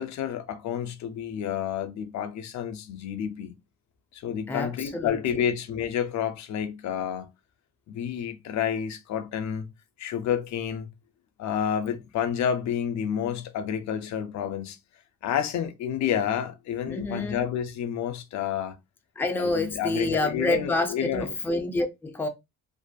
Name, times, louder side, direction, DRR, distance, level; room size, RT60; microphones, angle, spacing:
voice 1, 0.0-3.6 4.1-7.3 7.9-9.7 10.0-10.9 11.4-14.8 15.2-18.8 19.4-21.3, left 9 dB, 65° left, 0.5 m, -29 dB
voice 2, 4.5-5.2 16.9-17.4 19.2-22.3, left 2 dB, 5° left, 0.4 m, -28 dB
2.5 x 2.4 x 2.2 m
cardioid pair, 90°, 30 cm